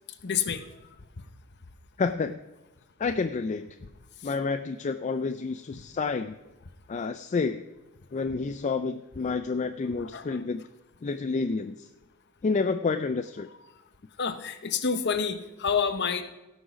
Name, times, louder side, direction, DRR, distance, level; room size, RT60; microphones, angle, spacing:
voice 1, 0.2-0.8 4.2-4.3 10.0-10.4 14.2-16.2, left 6 dB, 50° left, 10 dB, 0.8 m, -29 dB
voice 2, 2.0-2.4 3.0-3.7 4.2-6.4 6.9-7.6 8.1-10.6 11.0-11.9 12.4-13.5, left 4 dB, 30° left, 8 dB, 0.3 m, -29 dB
16.5 x 6.3 x 5.0 m, 1.1 s
head